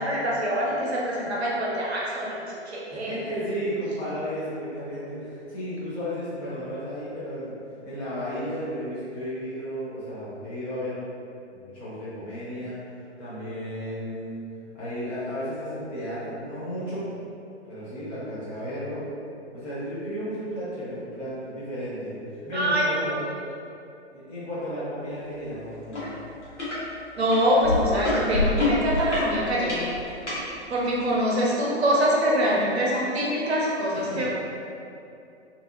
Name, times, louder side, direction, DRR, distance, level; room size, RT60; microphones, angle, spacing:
voice 1, 0.0-3.2 22.5-22.9 27.2-29.9 30.7-34.3, equal, 65° right, -5 dB, 0.7 m, -24 dB
voice 2, 2.9-7.5 7.8-11.0 11.5-12.8 13.2-14.4 14.7-17.1 17.6-19.0 19.5-23.2 24.1-26.1 33.9-34.3, equal, 20° left, -11 dB, 0.6 m, -33 dB
sound 1, 25.9-26.1 26.4-26.8 27.3-30.4 31.1-31.2, left 2 dB, 80° left, 1.1 m, -26 dB
2.5 x 2.4 x 2.4 m, 2.6 s
figure-of-eight pair, 115°, 35 cm